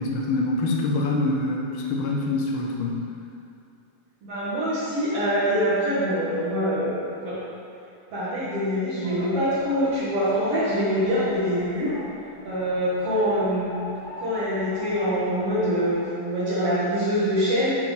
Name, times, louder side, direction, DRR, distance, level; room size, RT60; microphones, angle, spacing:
voice 1, 0.0-3.0, left 2 dB, 75° left, -1 dB, 1.2 m, -25 dB
voice 2, 4.2-7.4 8.1-11.9 12.4-13.7 14.2-17.7, equal, 55° right, -12 dB, 2.6 m, -24 dB
sound 1, 9.0-16.0, equal, 10° left, 0.5 m, -41 dB
7.7 x 4.7 x 5.5 m, 2.6 s
omnidirectional pair, 3.3 m